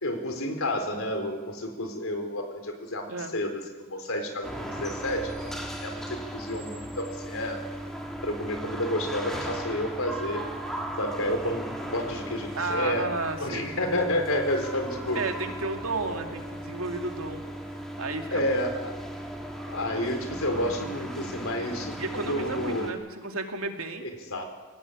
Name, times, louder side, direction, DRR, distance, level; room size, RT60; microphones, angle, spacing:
voice 1, 0.0-7.6 8.2-10.5 11.0-11.7 11.9-13.1 13.4-15.2 16.1-16.2 18.3-19.0 19.7-23.0 24.0-24.5, left 1 dB, 75° left, 5 dB, 4.3 m, -30 dB
sound 1, 4.4-22.9, right 1 dB, ahead, 3.4 m, -37 dB
voice 2, 12.5-13.7 15.1-17.4 18.0-18.5 22.0-24.1, right 3 dB, 80° right, 4 dB, 2.6 m, -32 dB
24.0 x 18.5 x 8.7 m, 1.3 s
head